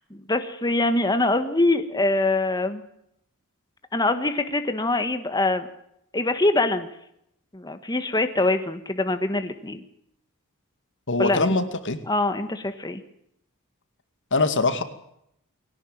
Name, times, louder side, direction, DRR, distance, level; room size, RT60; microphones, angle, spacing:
voice 1, 0.1-2.8 3.9-5.7 6.1-6.9 7.5-9.8 11.2-11.5 12.1-13.0, left 2 dB, 20° left, 9 dB, 1.4 m, -24 dB
voice 2, 11.1-12.0 14.3-14.8, left 3 dB, 55° left, 10 dB, 2.3 m, -22 dB
22.0 x 17.5 x 9.2 m, 0.75 s
head